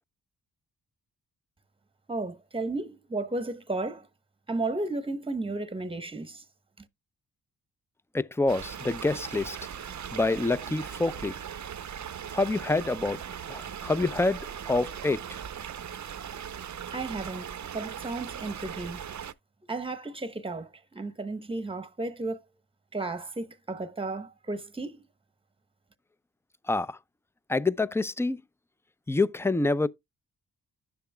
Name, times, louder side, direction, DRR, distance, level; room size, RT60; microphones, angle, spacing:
voice 1, 2.1-4.1 4.5-6.4 6.8-6.9 16.9-19.0 19.7-22.4 22.9-25.0, right 2 dB, 15° right, 1.0 m, -34 dB
voice 2, 8.1-9.6 10.1-11.3 12.3-13.2 13.5-14.4 14.7-15.4 26.7-27.0 27.5-28.4 29.1-29.9, left 3 dB, 5° left, 0.5 m, -27 dB
sound 1, 8.5-19.3, right 8 dB, 50° right, 0.7 m, -39 dB
10.5 x 6.9 x 2.2 m
cardioid pair, 55°, 37 cm